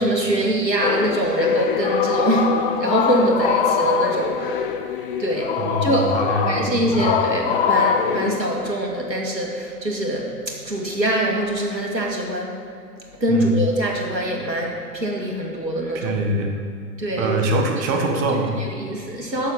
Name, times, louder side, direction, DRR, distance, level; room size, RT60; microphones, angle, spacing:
voice 1, 0.0-4.7 5.2-6.1 6.4-12.6 13.2-16.1 17.0-17.4 17.9-18.0 18.6-19.5, right 1 dB, 90° right, -1 dB, 2.1 m, -24 dB
sound 1, 0.8-8.4, left 6 dB, 35° left, 0.7 m, -23 dB
voice 2, 5.6-7.1 13.3-13.6 15.9-16.5 17.2-18.5, right 2 dB, 15° right, 3 dB, 0.5 m, -24 dB
9.0 x 6.8 x 7.2 m, 2.4 s
figure-of-eight pair, 115°, 50 cm